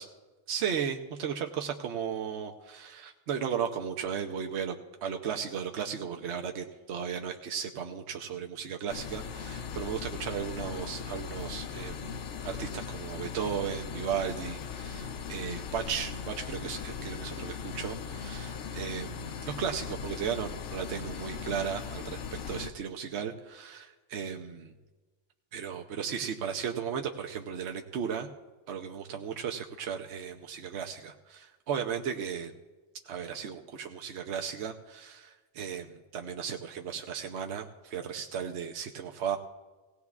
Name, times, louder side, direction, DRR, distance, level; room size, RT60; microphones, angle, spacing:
voice 1, 0.5-4.8 5.0-12.1 12.4-24.7 25.5-28.3 28.7-32.5 33.0-39.4, right 7 dB, 70° right, 3 dB, 1.0 m, -35 dB
sound 1, 8.9-22.7, left 6 dB, 80° left, 1.0 m, -39 dB
18.0 x 17.5 x 2.4 m, 1.2 s
omnidirectional pair, 1.2 m